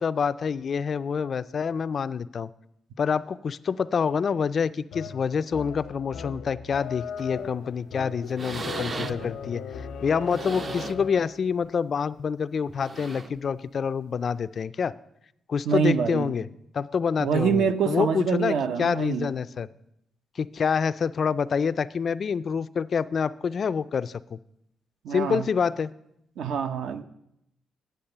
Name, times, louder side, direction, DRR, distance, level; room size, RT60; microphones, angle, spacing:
voice 1, 0.0-2.5 3.0-9.6 10.0-14.9 15.5-16.5 16.7-19.7 20.4-24.4 25.1-25.9, left 6 dB, 40° left, 15 dB, 0.3 m, -27 dB
sound 1, 4.9-11.4, left 7 dB, 85° left, 0.7 m, -38 dB
sound 2, 7.2-7.5 7.9-8.0 8.3-9.4 10.1-11.1 11.6-11.8 12.7-13.5 14.5-14.6, right 4 dB, 30° right, 0.4 m, -37 dB
voice 2, 15.6-16.3 17.2-19.3 25.0-25.4 26.4-27.0, right 6 dB, 75° right, 10 dB, 0.7 m, -25 dB
8.7 x 7.9 x 6.6 m, 0.79 s
cardioid pair, 160°, 0 cm